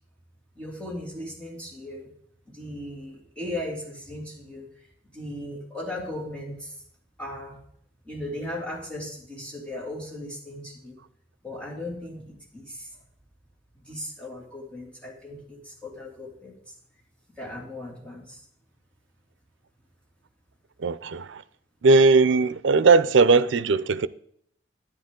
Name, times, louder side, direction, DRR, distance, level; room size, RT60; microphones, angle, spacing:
voice 1, 0.6-2.1 2.5-4.7 5.1-6.7 7.2-7.6 8.0-11.0 11.4-12.9 13.8-16.7 17.4-18.4, left 1 dB, 5° left, 2.7 m, -37 dB
voice 2, 20.8-21.4 21.8-24.1, right 4 dB, 85° right, 0.5 m, -19 dB
10.5 x 9.9 x 3.8 m
head